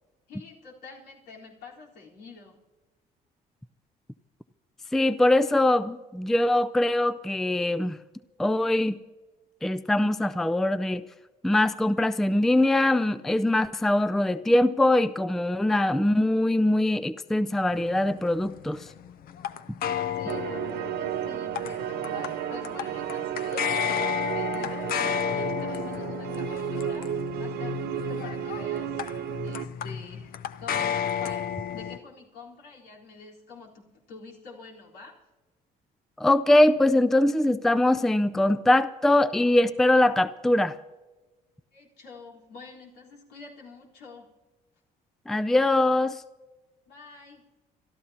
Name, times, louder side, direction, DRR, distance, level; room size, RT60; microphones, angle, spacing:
voice 1, 0.3-2.6 20.1-35.1 41.7-44.3 46.9-47.5, left 4 dB, 80° left, -4 dB, 3.9 m, -47 dB
voice 2, 4.9-8.0 8.4-9.0 9.6-11.0 11.4-18.8 36.2-40.7 45.3-46.2, left 1 dB, ahead, 14 dB, 0.4 m, -22 dB
sound 1, 17.6-32.0, left 8 dB, 60° left, 0.6 m, -33 dB
sound 2, 20.3-29.7, right 12 dB, 70° right, 0.6 m, -33 dB
29.0 x 13.0 x 2.9 m, 1.2 s
cardioid pair, 110°, 17 cm